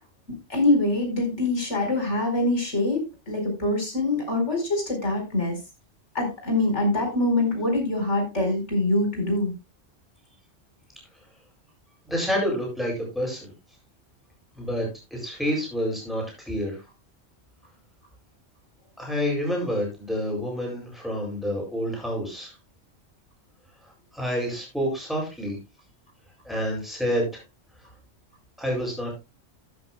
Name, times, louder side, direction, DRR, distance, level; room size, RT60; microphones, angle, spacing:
voice 1, 0.5-5.6 6.1-9.5, left 2 dB, 85° left, 3 dB, 5.1 m, -24 dB
voice 2, 12.1-13.5 14.6-16.8 19.0-22.5 24.1-25.6 26.4-27.3 28.6-29.1, equal, ahead, -2 dB, 7.7 m, -28 dB
13.5 x 12.0 x 2.3 m, 0.26 s
omnidirectional pair, 1.2 m